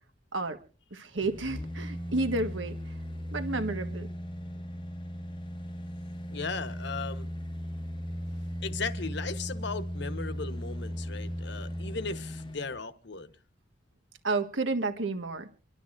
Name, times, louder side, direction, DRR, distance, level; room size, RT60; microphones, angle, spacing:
voice 1, 0.9-2.9 3.3-4.1 14.2-15.5, right 3 dB, 70° right, 1.6 m, -31 dB
sound 1, 1.2-12.8 13.1-13.2, equal, 25° left, 0.9 m, -37 dB
voice 2, 6.3-7.3 8.6-13.3, left 4 dB, 60° left, 1.2 m, -36 dB
27.0 x 12.5 x 2.6 m
head